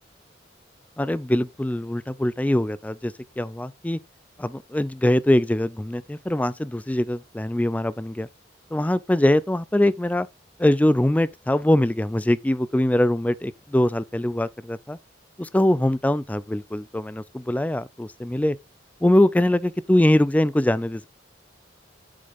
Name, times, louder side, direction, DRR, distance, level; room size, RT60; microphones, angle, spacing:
voice 1, 1.0-4.0 4.4-8.3 8.7-10.3 10.6-15.0 15.4-18.6 19.0-21.1, left 1 dB, 10° left, 0.3 m, -22 dB
7.6 x 6.5 x 2.5 m
head